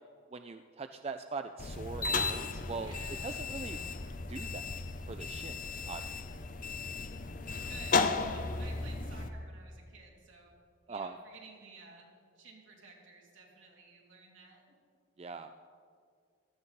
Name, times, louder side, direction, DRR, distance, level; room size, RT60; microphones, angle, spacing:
voice 1, 0.3-2.9 3.2-3.9 4.3-4.7 5.1-5.6 5.9-6.2 10.9-11.2 15.2-15.5, right 4 dB, 30° right, 8 dB, 0.3 m, -42 dB
sound 1, 1.6-9.3, left 4 dB, 40° left, 0.6 m, -35 dB
voice 2, 2.8-3.5 7.5-10.5 10.9-12.1 12.3-14.6, right 3 dB, 70° right, -2 dB, 2.9 m, -54 dB
16.0 x 13.5 x 4.1 m, 2.2 s
head